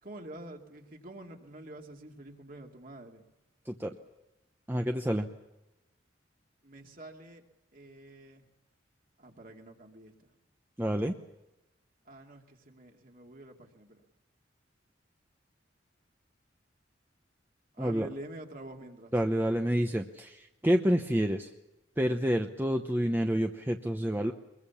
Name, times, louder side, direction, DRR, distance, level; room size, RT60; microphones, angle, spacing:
voice 1, 0.0-3.2 6.6-7.4 7.7-8.4 9.2-10.3 12.1-14.0 17.7-19.1, right 1 dB, 45° right, 2 dB, 2.4 m, -47 dB
voice 2, 4.7-5.3 10.8-11.1 17.8-18.1 19.1-21.5 22.0-24.3, equal, 10° right, 4 dB, 0.8 m, -28 dB
23.0 x 21.0 x 7.1 m, 0.98 s
head